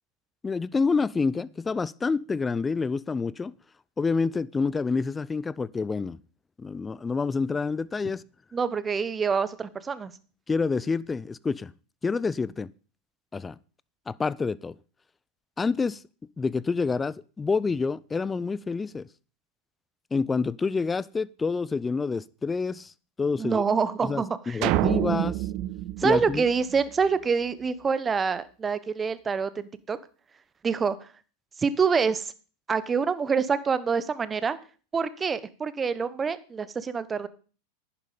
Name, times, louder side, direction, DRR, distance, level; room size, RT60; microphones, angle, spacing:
voice 1, 0.4-3.5 4.0-6.2 6.6-8.2 10.5-11.7 12.0-12.7 13.3-13.6 14.1-14.8 15.6-16.0 16.4-19.1 20.1-22.9 23.2-23.6 24.0-25.4 26.0-26.4, left 4 dB, 15° left, 0.5 m, -28 dB
voice 2, 8.5-10.1 23.4-24.6 26.0-30.0 30.6-31.0 31.6-32.3 32.7-34.6 34.9-37.3, right 5 dB, 20° right, 1.1 m, -26 dB
sound 1, 24.6-27.1, right 15 dB, 50° right, 0.6 m, -27 dB
11.0 x 9.5 x 5.1 m
hypercardioid pair, 95°, 0 cm